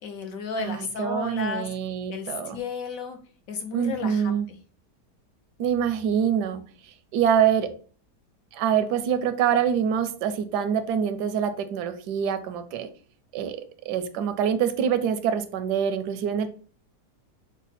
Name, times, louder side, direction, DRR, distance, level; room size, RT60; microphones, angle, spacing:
voice 1, 0.0-1.7 2.1-3.2 3.5-4.6, left 5 dB, 65° left, 0.9 m, -33 dB
voice 2, 0.6-2.6 3.7-4.5 5.6-6.6 7.1-7.8 8.5-12.9 13.3-16.5, right 8 dB, 80° right, 1.1 m, -25 dB
5.9 x 2.1 x 4.1 m
omnidirectional pair, 1.8 m